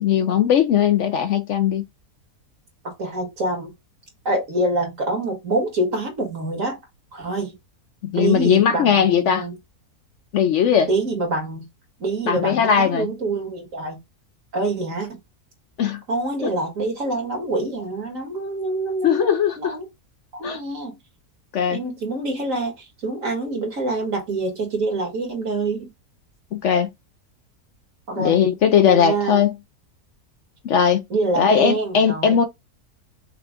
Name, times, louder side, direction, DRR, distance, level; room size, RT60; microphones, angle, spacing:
voice 1, 0.0-1.9 8.0-9.5 10.3-10.9 12.3-13.1 15.8-16.0 16.4-16.5 19.0-19.7 20.4-20.6 21.5-21.8 26.5-26.9 28.2-29.5 30.6-31.0 31.4-32.4, left 8 dB, 65° left, 0.7 m, -19 dB
voice 2, 2.8-3.7 4.3-6.8 7.1-7.5 8.1-9.6 10.9-11.7 12.0-14.0 14.5-15.1 16.1-19.9 20.3-20.9 21.7-25.9 28.1-28.4 28.9-29.4 31.1-32.4, right 2 dB, 55° right, 2.0 m, -26 dB
5.9 x 2.3 x 3.6 m
omnidirectional pair, 1.7 m